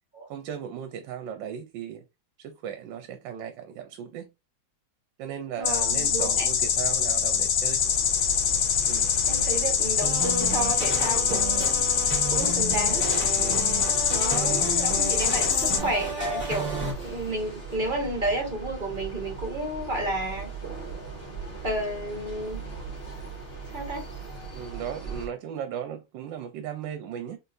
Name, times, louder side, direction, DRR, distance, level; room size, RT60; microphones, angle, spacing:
voice 1, 0.3-2.0 2.4-4.3 5.2-7.8 8.9-9.1 11.1-11.4 13.4-13.7 24.5-27.4, right 9 dB, 80° right, 1.3 m, -36 dB
sound 1, 5.6-15.8, left 8 dB, 60° left, 1.0 m, -24 dB
voice 2, 5.6-6.5 9.2-11.8 12.3-13.1 14.1-20.5 21.6-22.6 23.7-24.1, right 1 dB, 30° right, 1.5 m, -31 dB
sound 2, 7.8-25.3, right 4 dB, 30° left, 2.2 m, -38 dB
sound 3, 10.0-16.9, right 3 dB, 5° left, 1.8 m, -33 dB
3.9 x 3.8 x 2.6 m
omnidirectional pair, 2.0 m